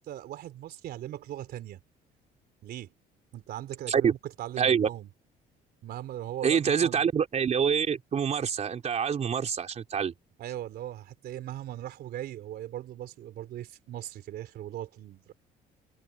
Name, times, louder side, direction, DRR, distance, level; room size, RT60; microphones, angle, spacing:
voice 1, 0.0-1.8 2.6-2.9 3.3-5.1 5.8-7.1 10.4-15.3, right 12 dB, 70° right, 3.6 m, -39 dB
voice 2, 4.6-4.9 6.4-10.1, right 7 dB, 40° right, 4.0 m, -26 dB
cardioid pair, 110°, 17 cm